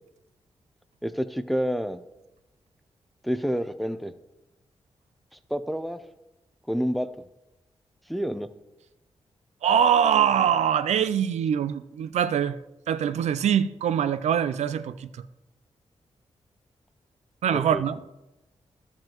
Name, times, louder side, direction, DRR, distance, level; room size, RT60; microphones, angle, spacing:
voice 1, 1.0-2.0 3.2-4.1 5.5-6.0 6.7-7.1 8.1-8.5 17.5-17.8, equal, ahead, 0.6 m, -28 dB
voice 2, 9.6-12.6 12.9-15.2 17.4-17.9, right 8 dB, 80° right, 0.4 m, -23 dB
12.0 x 7.7 x 3.0 m
cardioid pair, 55°, 11 cm